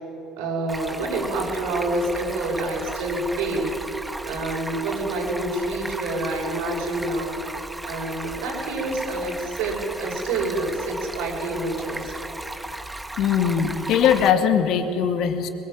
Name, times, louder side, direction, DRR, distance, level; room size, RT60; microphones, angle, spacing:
voice 1, 0.4-3.8 4.3-7.4 7.8-12.1, right 2 dB, 75° right, -1 dB, 6.7 m, -27 dB
Stream, 0.7-14.3, right 1 dB, 10° right, 1.4 m, -35 dB
voice 2, 13.2-15.5, left 8 dB, 60° left, 7 dB, 2.0 m, -20 dB
22.5 x 21.5 x 7.7 m, 3.0 s
hypercardioid pair, 75°, 0 cm